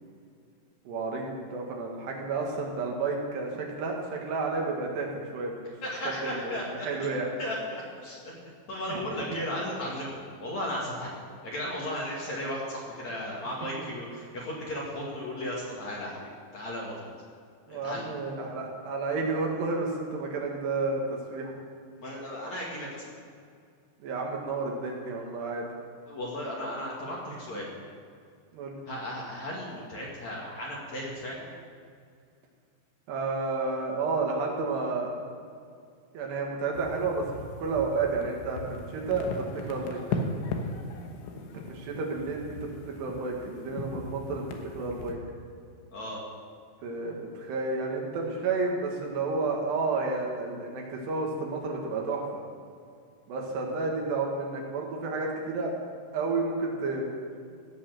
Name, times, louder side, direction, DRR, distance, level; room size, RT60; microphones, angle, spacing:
voice 1, 0.9-5.7 6.2-7.3 8.9-9.0 9.3-9.4 17.7-21.0 21.3-21.6 24.0-25.6 28.5-28.8 33.1-35.1 36.1-40.0 41.7-42.7 43.0-45.2 46.8-52.4 53.3-55.7 56.1-57.1, right 3 dB, 70° right, 0 dB, 3.7 m, -31 dB
voice 2, 5.8-7.1 7.4-8.3 8.7-17.1 17.7-18.1 22.0-23.0 26.1-27.7 28.9-31.5 45.9-46.2, left 1 dB, 50° left, -4 dB, 2.8 m, -35 dB
sound 1, 36.7-45.1, left 3 dB, 80° left, 3.4 m, -38 dB
16.0 x 8.4 x 6.4 m, 2.3 s
omnidirectional pair, 5.2 m